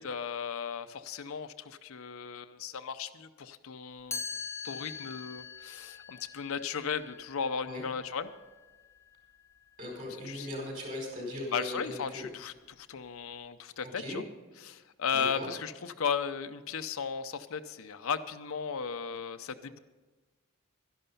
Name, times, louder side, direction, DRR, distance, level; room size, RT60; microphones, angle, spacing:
voice 1, 0.0-4.3 4.6-8.3 10.2-10.5 11.5-14.2 14.6-19.8, left 6 dB, 70° left, 10 dB, 0.6 m, -36 dB
Chime, 4.1-10.0, left 5 dB, 10° left, 0.7 m, -44 dB
voice 2, 9.8-12.2 13.8-14.2 15.1-15.5, left 1 dB, 40° right, -1 dB, 4.7 m, -39 dB
12.5 x 11.0 x 5.4 m, 1.2 s
head